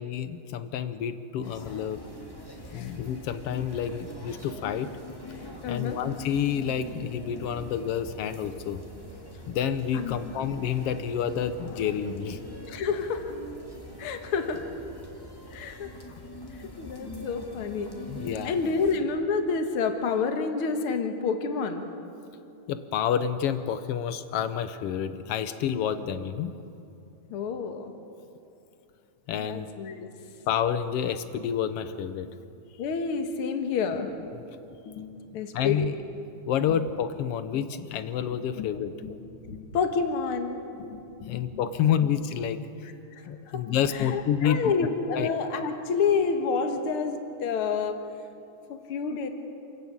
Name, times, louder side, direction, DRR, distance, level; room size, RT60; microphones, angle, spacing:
voice 1, 0.0-2.0 2.7-4.9 5.7-8.8 9.5-12.4 18.1-18.5 22.7-26.5 29.3-29.7 30.5-32.3 35.5-35.9 36.5-38.9 41.3-42.6 43.3-44.7 45.1-45.3, left 8 dB, 70° left, 11 dB, 1.5 m, -29 dB
sound 1, 1.4-19.0, left 1 dB, 10° left, 1.6 m, -43 dB
voice 2, 5.6-6.0 9.9-10.3 12.7-13.3 14.0-14.6 15.5-15.9 16.8-17.9 18.4-21.8 27.3-27.9 29.4-30.1 32.8-34.3 34.9-36.0 36.7-36.8 37.5-37.6 38.6-38.7 39.0-39.1 39.4-41.5 43.5-48.0 48.7-49.3, left 5 dB, 50° left, 6 dB, 2.1 m, -29 dB
28.0 x 14.0 x 8.8 m, 2.7 s
omnidirectional pair, 3.5 m